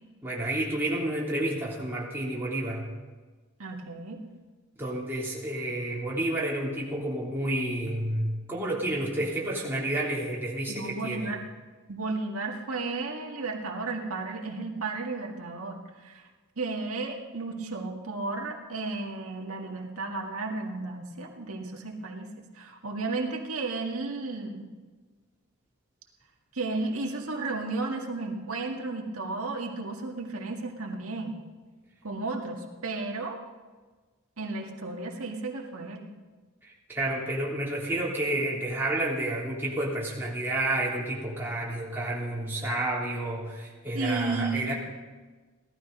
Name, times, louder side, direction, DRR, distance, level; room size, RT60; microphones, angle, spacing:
voice 1, 0.2-2.8 4.8-11.3 36.6-44.7, right 1 dB, 10° right, -6 dB, 3.3 m, -30 dB
voice 2, 3.6-4.2 10.7-11.4 11.9-16.3 16.6-24.7 26.5-31.4 32.0-33.4 34.4-36.1 43.9-44.7, right 3 dB, 85° right, 1 dB, 1.9 m, -33 dB
17.5 x 12.5 x 5.4 m, 1.3 s
head